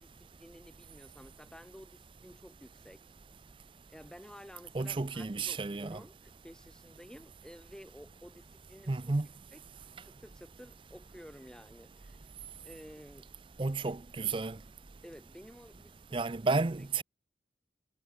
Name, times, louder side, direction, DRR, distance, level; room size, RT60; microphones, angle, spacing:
voice 1, 0.0-3.0 3.9-9.2 9.5-9.6 10.0-12.2 12.6-13.3 15.0-16.3 16.8-16.9, equal, 5° left, 3.4 m, -53 dB
voice 2, 4.7-6.0 8.9-9.3 13.6-14.6 16.1-17.0, right 3 dB, 30° right, 0.5 m, -32 dB
head